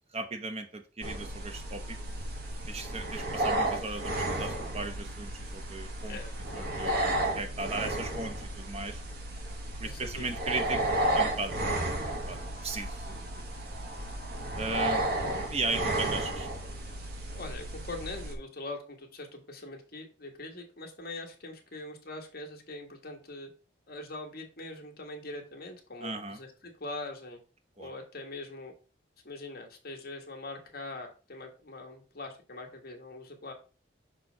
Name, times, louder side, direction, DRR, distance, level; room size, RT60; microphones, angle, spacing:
voice 1, 0.1-2.0 2.7-6.2 6.5-9.0 9.8-10.8 11.1-11.5 12.0-13.3 14.6-15.0 15.5-16.5 26.0-26.4 27.8-27.9, right 3 dB, 35° right, 6 dB, 0.9 m, -37 dB
sound 1, 1.0-18.3, right 1 dB, 55° right, 1.2 m, -33 dB
voice 2, 6.1-6.7 9.8-10.3 14.7-15.0 17.3-23.5 23.9-27.4 27.8-28.7 29.2-33.5, left 2 dB, 55° left, 2 dB, 1.5 m, -42 dB
6.2 x 3.1 x 5.0 m, 0.35 s
head